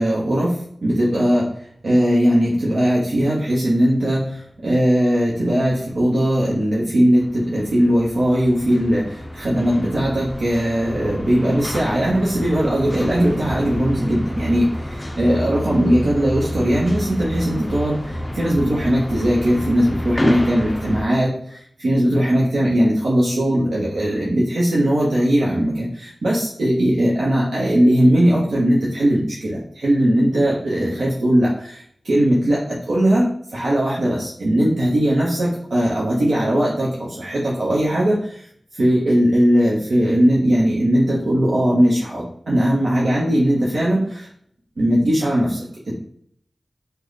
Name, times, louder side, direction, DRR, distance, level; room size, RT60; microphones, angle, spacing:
voice 1, 0.0-1.5 1.8-33.3 33.5-38.5 38.7-44.3 44.8-45.7, equal, 85° right, -6 dB, 0.8 m, -19 dB
sound 1, 7.1-21.1, left 1 dB, 20° left, 0.4 m, -29 dB
3.2 x 2.2 x 3.8 m, 0.65 s
wide cardioid pair, 65°, 0 cm